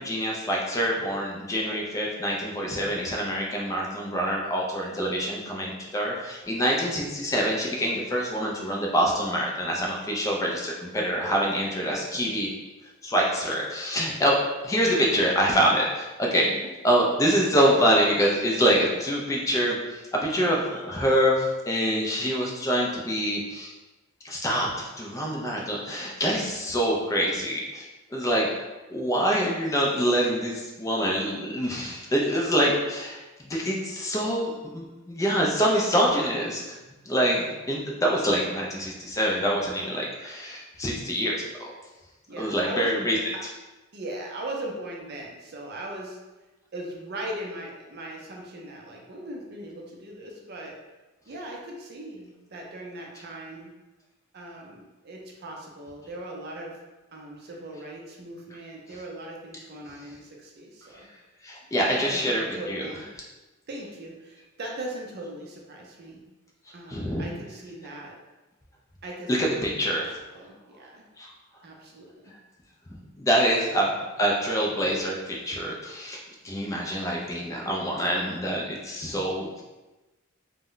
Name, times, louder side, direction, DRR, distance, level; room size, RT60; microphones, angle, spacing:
voice 1, 0.0-12.5 13.0-16.5 16.8-23.7 24.2-36.8 37.1-41.7 42.4-43.2 60.9-61.0 61.4-62.9 66.9-67.2 69.3-70.1 71.2-71.3 73.2-76.2 76.4-79.6, equal, 15° left, -2 dB, 0.3 m, -25 dB
voice 2, 42.3-43.1 43.9-46.2 46.7-50.7 51.3-53.7 54.3-56.8 57.1-61.1 61.9-63.1 63.7-66.2 66.7-68.1 69.0-71.0 71.6-72.3 73.6-73.8, right 1 dB, 50° right, -1 dB, 0.5 m, -39 dB
2.1 x 2.0 x 3.7 m, 1.1 s
head